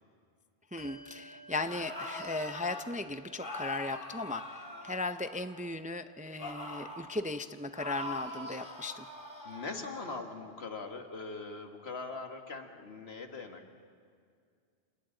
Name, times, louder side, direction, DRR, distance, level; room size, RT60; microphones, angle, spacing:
voice 1, 0.7-4.4 4.8-9.0, left 2 dB, 10° right, 10 dB, 0.4 m, -37 dB
Bell, 0.8-10.8, right 3 dB, 70° right, 1.6 m, -58 dB
sound 1, 1.5-2.9 3.4-5.7 6.4-7.1 7.8-10.2, left 1 dB, 55° left, 2.4 m, -43 dB
voice 2, 9.4-13.8, left 3 dB, 85° left, 4 dB, 1.9 m, -41 dB
30.0 x 27.5 x 3.9 m, 2.2 s
omnidirectional pair, 1.0 m